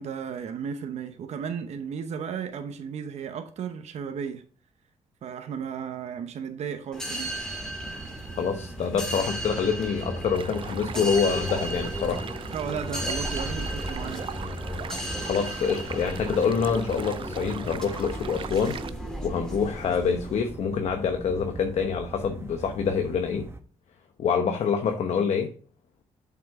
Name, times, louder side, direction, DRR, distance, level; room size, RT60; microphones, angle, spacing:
voice 1, 0.0-4.4 5.2-7.5 12.5-14.3 24.8-24.9, right 7 dB, 65° right, 0.9 m, -34 dB
sound 1, 6.9-20.4, equal, 5° left, 2.0 m, -35 dB
sound 2, 7.5-23.6, right 2 dB, 20° right, 1.0 m, -40 dB
voice 2, 8.4-12.3 13.0-13.1 15.2-18.8 19.2-23.5 24.2-25.5, left 6 dB, 60° left, 0.9 m, -26 dB
Stream, 10.3-18.9, right 7 dB, 45° right, 0.5 m, -40 dB
7.3 x 6.0 x 3.6 m
cardioid pair, 90°, 12 cm